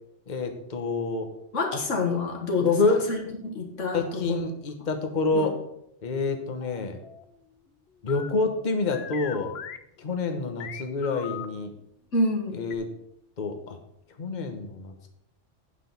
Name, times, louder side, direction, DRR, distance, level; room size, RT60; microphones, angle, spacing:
voice 1, 0.3-1.3 2.6-3.0 3.9-5.6 6.0-7.0 8.0-9.6 10.0-11.7 12.6-12.8 13.4-13.8 14.2-15.1, left 3 dB, 40° left, 4 dB, 1.2 m, -27 dB
voice 2, 1.5-4.4 5.3-5.5 12.1-12.6, left 2 dB, 90° left, 1 dB, 2.0 m, -28 dB
sound 1, 6.6-7.2 8.1-11.5 12.7-12.8, left 9 dB, 65° left, 0.9 m, -40 dB
8.4 x 5.9 x 6.9 m, 0.78 s
omnidirectional pair, 1.2 m